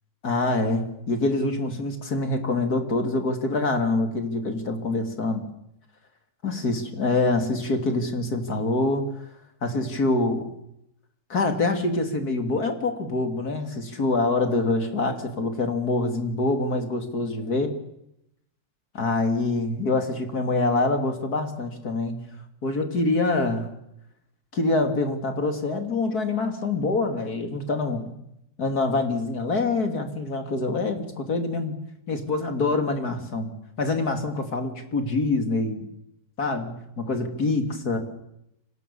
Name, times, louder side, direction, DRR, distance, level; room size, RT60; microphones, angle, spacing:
voice 1, 0.2-5.4 6.4-9.0 9.6-10.5 11.3-17.7 18.9-22.2 22.6-23.7 24.5-28.1 28.6-31.8 32.1-35.9 36.4-38.0, left 2 dB, 80° left, 6 dB, 3.4 m, -25 dB
29.0 x 25.0 x 7.1 m, 0.82 s
omnidirectional pair, 1.6 m